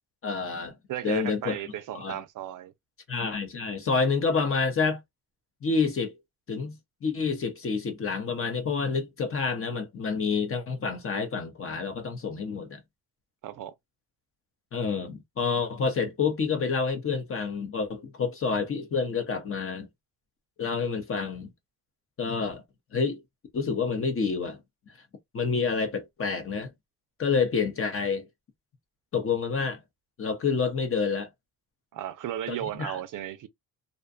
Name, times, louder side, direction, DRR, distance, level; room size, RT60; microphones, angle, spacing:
voice 1, 0.2-0.8 1.0-1.6 1.9-2.2 3.1-5.0 5.6-6.2 6.5-12.8 14.7-19.9 20.6-21.5 22.2-22.6 22.9-23.2 23.5-24.6 25.3-26.7 27.2-28.3 29.1-29.8 30.2-31.3 32.8-33.0, left 5 dB, 35° left, 0.7 m, -28 dB
voice 2, 0.9-2.7 13.4-13.7 31.9-33.5, right 11 dB, 60° right, 0.5 m, -35 dB
2.6 x 2.2 x 2.4 m
cardioid pair, 120°, 37 cm